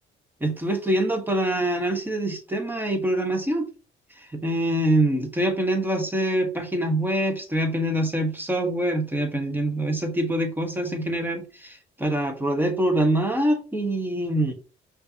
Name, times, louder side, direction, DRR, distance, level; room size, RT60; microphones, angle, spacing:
voice 1, 0.4-3.7 4.2-14.5, right 1 dB, 10° right, 4 dB, 1.1 m, -25 dB
5.3 x 2.7 x 2.7 m, 0.33 s
cardioid pair, 90°, 20 cm